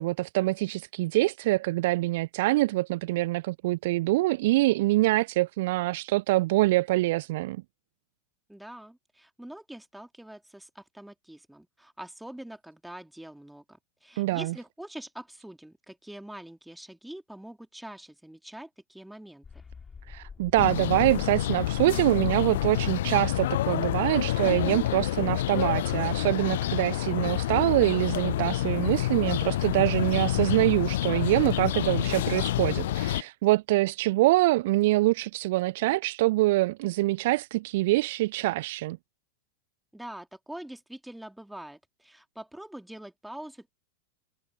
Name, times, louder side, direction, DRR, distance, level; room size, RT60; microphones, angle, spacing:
voice 1, 0.0-7.6 14.2-14.5 20.1-39.0, right 18 dB, 50° right, 0.3 m, -25 dB
voice 2, 8.5-19.4 39.9-43.7, right 1 dB, 5° right, 3.4 m, -44 dB
sound 1, 19.4-24.3 25.7-25.9, left 5 dB, 15° left, 2.8 m, -47 dB
sound 2, 20.6-33.2, left 14 dB, 55° left, 0.8 m, -28 dB
figure-of-eight pair, 90°, 0 cm